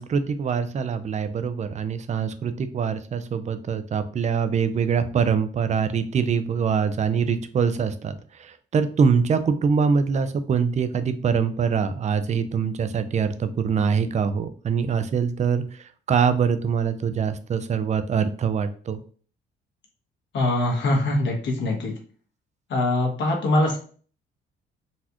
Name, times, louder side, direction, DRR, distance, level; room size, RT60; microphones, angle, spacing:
voice 1, 0.0-8.1 8.4-15.6 16.1-19.0, right 6 dB, 35° right, 10 dB, 0.4 m, -24 dB
voice 2, 20.3-21.9 22.7-23.8, left 2 dB, 70° left, 0 dB, 1.3 m, -23 dB
4.0 x 2.4 x 2.9 m, 0.42 s
cardioid pair, 90°, 20 cm